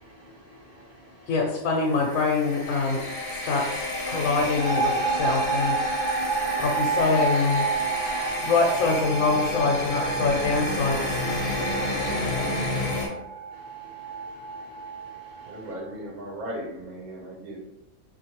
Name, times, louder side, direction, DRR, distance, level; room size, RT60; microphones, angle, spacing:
voice 1, 0.0-1.6 13.5-15.7, equal, 20° left, 0.4 m, -52 dB
voice 2, 1.3-3.0 3.3-6.3 6.6-7.7 8.4-11.0 12.1-12.5, left 4 dB, 75° left, 1.0 m, -25 dB
sound 1, 1.8-13.1, left 1 dB, 40° left, 0.8 m, -30 dB
sound 2, 4.6-15.7, right 5 dB, 55° right, 1.3 m, -30 dB
voice 3, 15.5-17.6, right 1 dB, 90° right, 1.2 m, -37 dB
3.8 x 2.6 x 2.9 m
omnidirectional pair, 1.5 m